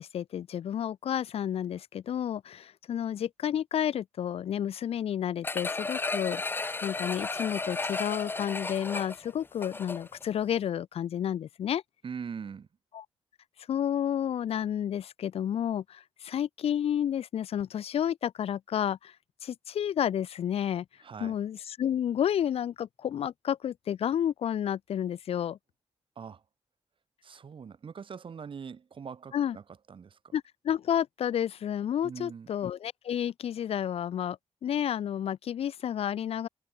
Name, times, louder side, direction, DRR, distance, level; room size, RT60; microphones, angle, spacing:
voice 1, 0.0-6.4 6.8-11.8 12.9-13.0 13.7-19.1 19.4-20.8 21.2-25.6 29.3-29.6 30.3-36.5, left 9 dB, 80° left, 0.7 m, -31 dB
sound 1, 5.4-10.2 10.6-10.7, left 3 dB, 20° left, 0.4 m, -34 dB
voice 2, 12.0-12.7 21.0-21.4 26.1-26.4 27.2-30.3 32.0-32.5, right 6 dB, 60° right, 3.2 m, -42 dB
cardioid pair, 90°, 10 cm